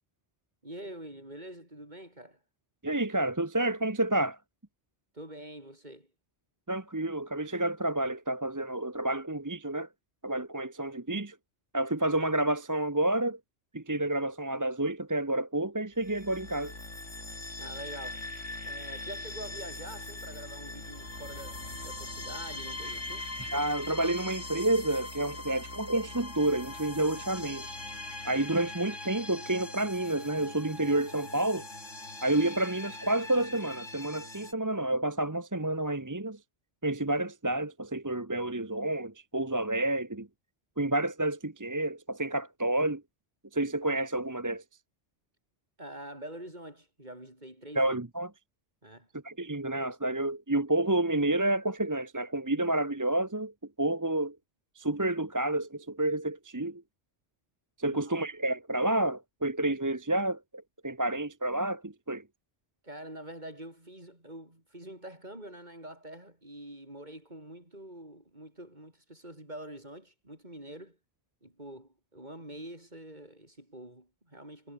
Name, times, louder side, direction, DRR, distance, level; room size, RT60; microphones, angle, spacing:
voice 1, 0.6-2.4 5.1-6.1 17.6-18.3 18.6-23.3 45.8-48.0 48.8-49.1 57.9-58.2 62.8-71.0 71.4-74.7, right 1 dB, 40° right, 7.5 m, -45 dB
voice 2, 2.8-4.4 6.7-9.9 10.2-11.3 11.7-13.4 13.7-16.8 23.4-27.7 28.2-31.6 32.2-36.4 36.8-40.3 40.8-43.0 43.5-44.6 47.7-48.3 49.2-53.5 53.8-54.4 54.8-56.8 57.8-62.2, right 1 dB, 15° right, 1.1 m, -29 dB
sound 1, 16.0-34.5, left 2 dB, 85° left, 5.6 m, -41 dB
omnidirectional pair, 1.2 m